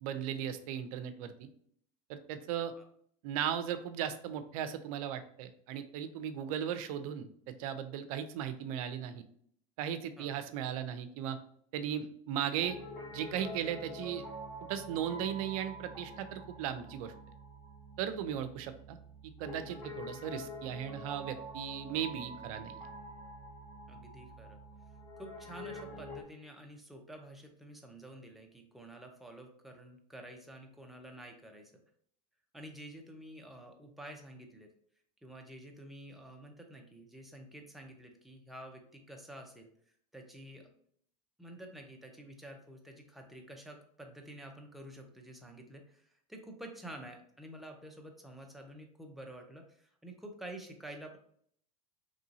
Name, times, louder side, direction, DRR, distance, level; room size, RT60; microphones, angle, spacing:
voice 1, 0.0-1.5 2.1-2.7 3.2-9.2 9.8-11.4 11.7-12.8 13.1-14.2 14.7-17.1 18.0-19.0 19.4-22.7, right 9 dB, 70° right, 10 dB, 0.5 m, -37 dB
Piano, 12.5-26.2, equal, 20° left, 1.3 m, -46 dB
voice 2, 23.9-24.6 25.2-31.7 32.5-34.7 35.2-39.7 40.1-40.8 41.4-51.2, right 1 dB, ahead, 2 dB, 0.5 m, -49 dB
3.0 x 2.7 x 2.6 m, 0.64 s
supercardioid pair, 115°, 19 cm